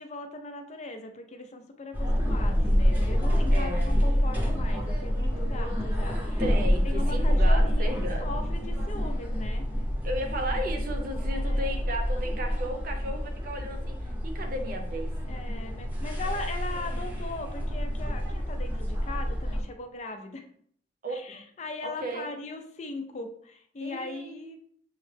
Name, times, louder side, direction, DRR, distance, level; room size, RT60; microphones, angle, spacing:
voice 1, 0.0-6.4 6.8-9.6 11.3-11.8 15.3-20.5 21.1-24.6, left 2 dB, 40° left, 5 dB, 0.4 m, -39 dB
sound 1, 1.9-19.6, equal, 10° right, 0.7 m, -27 dB
voice 2, 3.5-4.0 6.4-8.3 10.0-15.1 16.2-16.4 21.0-21.4 21.8-22.3 23.8-24.6, right 1 dB, 50° right, 3 dB, 0.7 m, -35 dB
6.3 x 2.1 x 3.2 m, 0.63 s
head